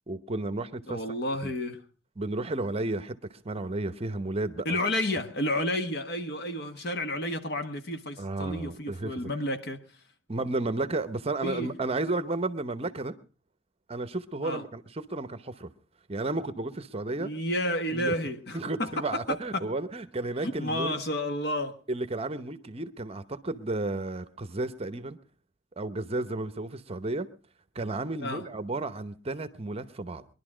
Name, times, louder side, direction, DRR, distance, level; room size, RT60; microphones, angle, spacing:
voice 1, 0.1-1.0 1.4-1.5 2.2-3.2 3.4-4.8 8.2-9.3 10.3-13.1 13.9-15.7 16.1-17.3 17.9-18.2 18.5-20.9 21.9-25.2 25.8-27.3 27.7-30.3, right 2 dB, 30° right, 0.8 m, -32 dB
voice 2, 0.9-1.8 4.6-9.8 11.4-11.7 14.4-14.6 17.2-19.7 20.4-21.8 28.2-28.4, left 1 dB, 60° left, 1.5 m, -31 dB
21.5 x 11.5 x 5.0 m
head